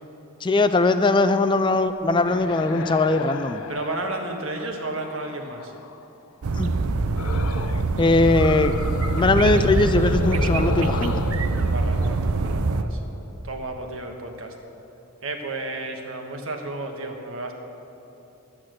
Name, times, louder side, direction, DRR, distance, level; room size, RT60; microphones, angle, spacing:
voice 1, 0.4-3.6 6.6-6.7 8.0-8.7 9.1-11.1, left 2 dB, 20° left, 10 dB, 0.4 m, -20 dB
sound 1, 2.2-6.1 7.2-7.9 8.2-13.1, left 3 dB, 80° left, 0.6 m, -33 dB
voice 2, 3.7-5.7 11.7-13.0 13.4-14.5 15.2-17.5, right 2 dB, 65° right, 3 dB, 1.4 m, -32 dB
sound 2, 6.4-12.8, right 3 dB, 90° right, 0.6 m, -24 dB
11.0 x 8.7 x 7.6 m, 2.9 s
head